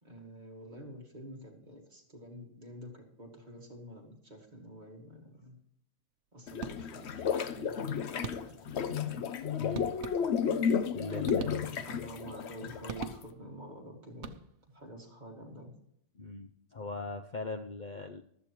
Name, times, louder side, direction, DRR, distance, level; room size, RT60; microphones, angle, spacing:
voice 1, 0.0-5.6 6.3-9.5 11.5-14.3 14.7-15.7, equal, 40° right, 0 dB, 2.5 m, -48 dB
sound 1, 6.5-13.2, left 7 dB, 65° left, 1.0 m, -32 dB
sound 2, 6.6-7.2 8.2-8.8 9.7-10.6 11.2-12.0 12.9-13.6 14.1-14.8, right 6 dB, 75° right, 1.1 m, -43 dB
voice 2, 9.6-9.9 10.9-11.9 16.2-18.2, left 3 dB, 50° left, 6 dB, 0.7 m, -40 dB
15.0 x 12.5 x 3.1 m, 0.74 s
omnidirectional pair, 1.2 m